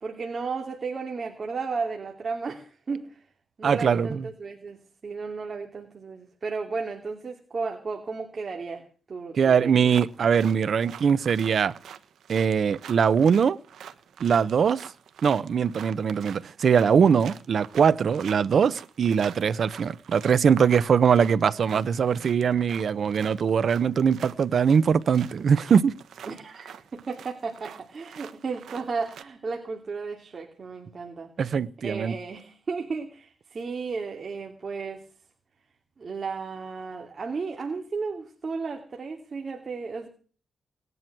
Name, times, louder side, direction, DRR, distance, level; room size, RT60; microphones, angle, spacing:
voice 1, 0.0-3.2 3.6-9.9 26.3-31.3 31.8-35.0 36.0-40.1, right 4 dB, 40° right, 2.7 m, -34 dB
voice 2, 3.6-4.2 9.3-11.7 12.3-13.6 14.2-14.8 15.2-25.9 31.4-32.1, right 7 dB, 55° right, 0.9 m, -22 dB
sound 1, 9.9-29.2, right 9 dB, 85° right, 1.4 m, -45 dB
20.0 x 11.0 x 6.1 m
wide cardioid pair, 130°, 0 cm